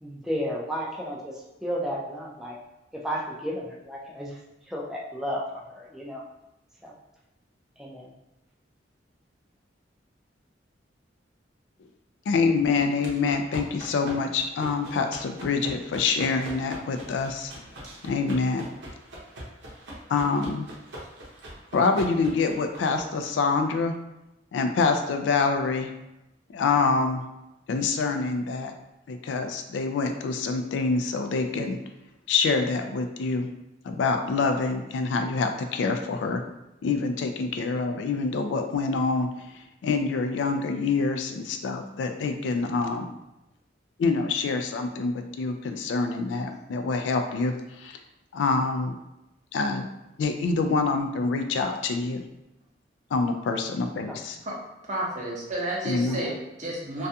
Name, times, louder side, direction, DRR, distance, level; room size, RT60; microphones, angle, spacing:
voice 1, 0.0-2.6 2.9-4.4 4.7-6.2 6.8-6.9 7.8-8.1 54.1-54.2 56.2-56.3, equal, 5° right, -4 dB, 0.4 m, -33 dB
voice 2, 12.3-17.5 18.0-18.7 20.1-20.7 21.7-23.9 24.5-25.9 26.5-27.2 27.7-28.7 29.1-31.8 32.3-33.5 33.8-36.4 36.8-39.3 39.5-43.1 44.0-48.0 48.3-49.0 49.5-49.9 50.2-52.2 53.1-54.4 55.8-56.2, left 4 dB, 90° left, 6 dB, 0.3 m, -26 dB
sound 1, 12.8-23.3, right 1 dB, 85° right, 0.7 m, -42 dB
voice 3, 54.9-57.1, right 1 dB, 40° right, -4 dB, 0.7 m, -31 dB
2.4 x 2.2 x 2.7 m, 0.93 s
head